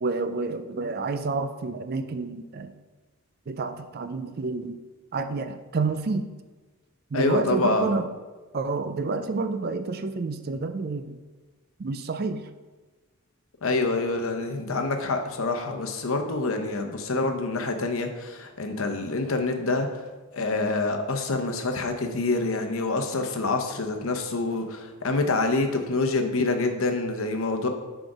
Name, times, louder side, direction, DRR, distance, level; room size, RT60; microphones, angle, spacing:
voice 1, 0.0-2.7 3.5-4.8 5.1-6.3 7.1-8.1 8.5-11.2 11.8-12.5, right 3 dB, 45° right, 9 dB, 0.4 m, -29 dB
voice 2, 7.1-7.9 13.6-20.0 20.3-27.7, left 3 dB, 70° left, 5 dB, 0.8 m, -26 dB
6.2 x 5.0 x 4.9 m, 1.3 s
head